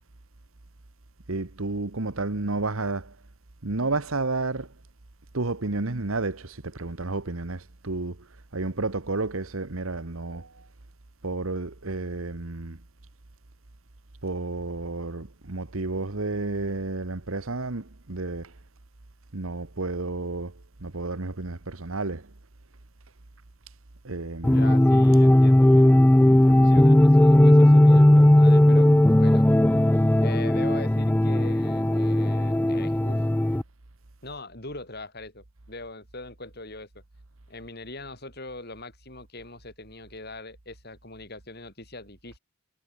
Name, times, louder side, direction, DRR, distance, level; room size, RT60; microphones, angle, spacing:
voice 1, 1.3-3.2 3.6-4.7 5.3-8.3 8.5-10.6 11.2-12.8 14.2-18.5 19.3-22.3 24.0-24.7, right 3 dB, 75° right, 1.4 m, -31 dB
voice 2, 24.4-26.0 26.5-29.5 30.2-33.3 34.2-36.9 37.5-42.4, left 2 dB, 45° left, 6.6 m, -41 dB
sound 1, 24.4-33.6, left 1 dB, 10° left, 0.3 m, -17 dB
head